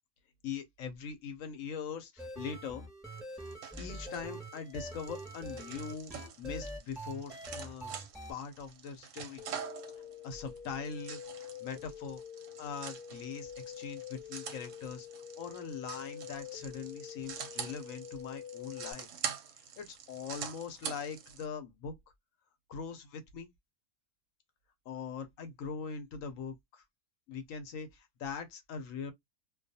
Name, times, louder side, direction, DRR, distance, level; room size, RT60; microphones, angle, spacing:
voice 1, 0.4-2.9 3.8-7.9 8.3-9.5 10.2-12.2 12.6-15.1 15.4-19.1 19.6-22.0 22.7-23.5 24.9-26.8 27.3-29.1, left 6 dB, 70° left, 0.9 m, -42 dB
sound 1, 2.2-8.3, right 1 dB, ahead, 1.2 m, -44 dB
sound 2, 3.1-21.4, right 7 dB, 65° right, 0.9 m, -45 dB
sound 3, 9.4-18.9, left 9 dB, 85° left, 1.1 m, -47 dB
2.3 x 2.3 x 2.6 m
omnidirectional pair, 1.6 m